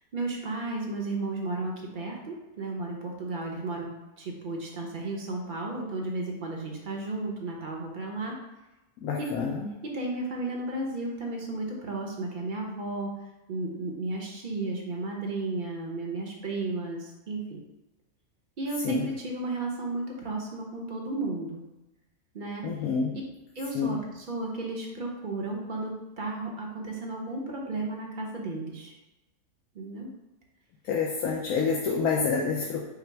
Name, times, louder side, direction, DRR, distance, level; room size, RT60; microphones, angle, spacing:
voice 1, 0.1-3.9 4.2-8.3 9.2-9.3 9.9-13.1 13.5-17.6 18.6-21.6 22.3-22.6 23.6-28.9 29.7-30.1, right 2 dB, 45° right, -1 dB, 0.8 m, -33 dB
voice 2, 9.0-9.7 18.8-19.1 22.6-23.1 23.7-24.0 30.8-32.8, left 5 dB, 85° left, -2 dB, 1.1 m, -28 dB
5.7 x 2.0 x 4.5 m, 1.0 s
omnidirectional pair, 1.5 m